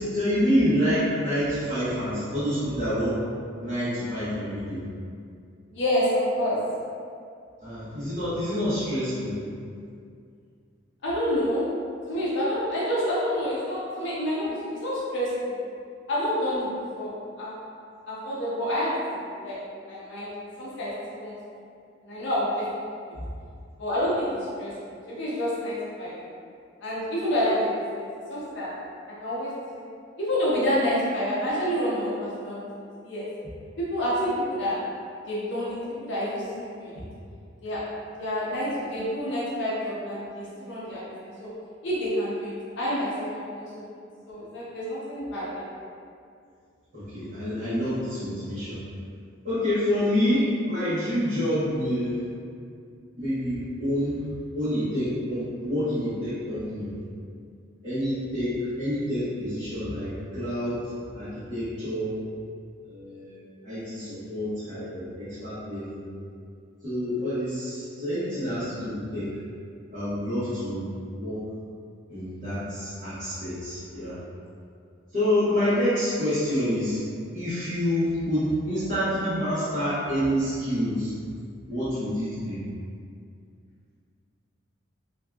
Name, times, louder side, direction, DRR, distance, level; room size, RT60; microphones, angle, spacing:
voice 1, 0.0-3.2 3.6-4.8 7.6-9.4 23.1-23.2 46.9-48.8 49.4-52.1 53.2-56.9 57.8-60.8 61.1-62.1 62.8-66.1 66.8-69.3 69.9-70.9 71.1-71.4 72.1-74.2 75.1-77.0 77.3-81.1 81.7-82.6, equal, 45° right, -17 dB, 0.9 m, -27 dB
voice 2, 5.7-6.6 11.0-11.6 12.1-15.6 16.1-16.7 16.9-17.5 18.1-19.6 19.8-20.3 20.6-21.3 22.0-22.8 23.8-26.1 26.8-28.7 29.2-29.8 30.2-32.6 33.0-33.3 33.8-34.8 35.3-37.0 37.6-37.8 38.2-41.5 41.8-43.7 44.3-45.6, equal, 65° left, -8 dB, 0.6 m, -28 dB
2.6 x 2.2 x 2.2 m, 2.3 s
head